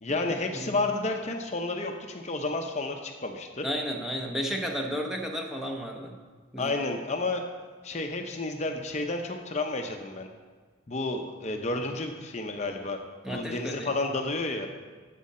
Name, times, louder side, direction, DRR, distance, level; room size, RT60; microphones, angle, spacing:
voice 1, 0.0-3.7 6.6-7.4 7.8-10.3 10.9-13.0 13.3-14.7, left 2 dB, 35° left, 3 dB, 0.6 m, -31 dB
voice 2, 3.6-6.2 6.5-6.7 13.2-13.9, equal, ahead, 1 dB, 0.8 m, -33 dB
11.0 x 7.6 x 4.2 m, 1.5 s
head